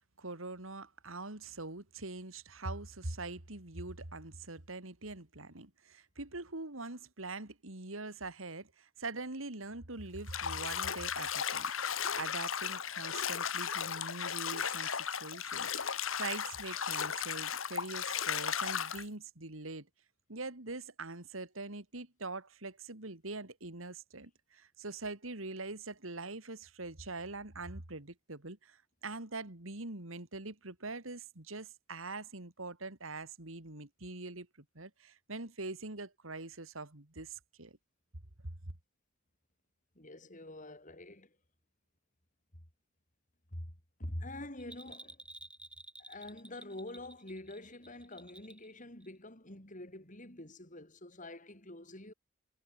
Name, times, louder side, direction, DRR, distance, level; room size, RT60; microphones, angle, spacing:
voice 1, 0.2-11.7 12.0-19.9 20.3-37.7, right 3 dB, 85° right, 2.9 m, -43 dB
Bathtub (filling or washing), 10.3-19.0, left 7 dB, 80° left, 2.0 m, -36 dB
voice 2, 39.9-41.3 43.5-43.7 44.0-45.2 46.0-52.1, left 1 dB, 40° left, 5.1 m, -46 dB
Bell, 44.6-48.7 49.0-49.1, right 1 dB, 5° right, 5.0 m, -52 dB
head